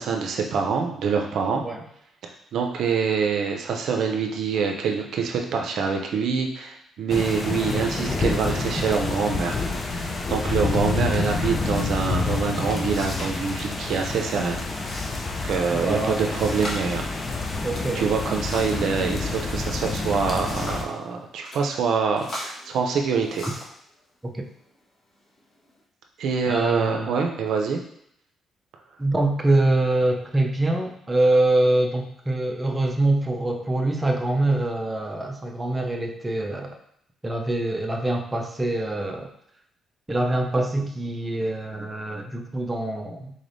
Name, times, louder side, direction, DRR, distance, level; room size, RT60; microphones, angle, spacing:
voice 1, 0.0-1.6 2.5-9.7 9.9-17.1 17.9-23.4 26.2-27.8, right 5 dB, 70° right, 2 dB, 0.5 m, -25 dB
sound 1, 7.1-20.8, left 3 dB, 35° left, 0.5 m, -28 dB
sound 2, 12.7-13.4 13.7-14.2 14.7-15.2 15.5-15.6 16.2-18.9 19.9-20.9 21.4-21.6 22.2-23.8 24.6-24.7 25.3-25.8, left 1 dB, 55° left, 1.3 m, -38 dB
voice 2, 15.7-16.3 17.6-18.1 24.2-24.4 26.5-27.1 29.0-36.8 37.2-39.3 40.1-43.3, right 2 dB, 15° right, 1 dB, 0.5 m, -24 dB
3.9 x 3.2 x 2.6 m, 0.71 s
cardioid pair, 90°, 0 cm